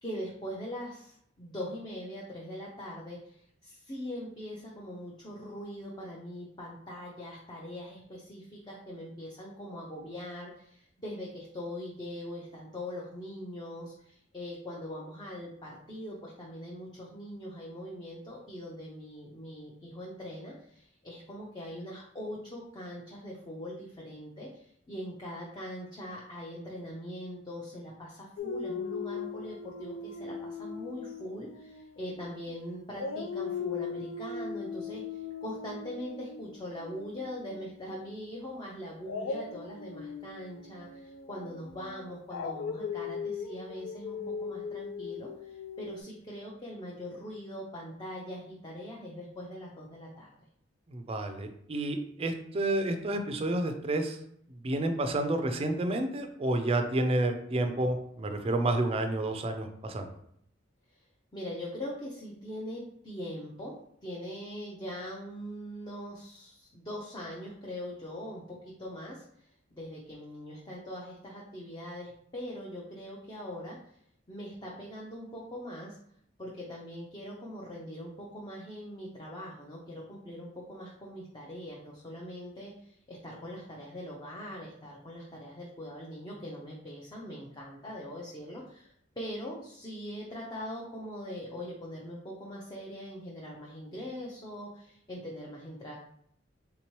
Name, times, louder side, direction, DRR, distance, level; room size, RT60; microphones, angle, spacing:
voice 1, 0.0-50.3 60.9-61.0 61.3-63.7 64.0-73.8 74.3-76.0 76.4-95.9, equal, 25° left, -4 dB, 0.5 m, -42 dB
Dog, 28.4-32.5 32.9-37.9 39.0-46.0, left 5 dB, 85° left, 0.4 m, -39 dB
voice 2, 50.9-54.2 54.6-60.1, right 1 dB, 30° right, 6 dB, 0.4 m, -30 dB
3.5 x 2.9 x 3.0 m, 0.68 s
head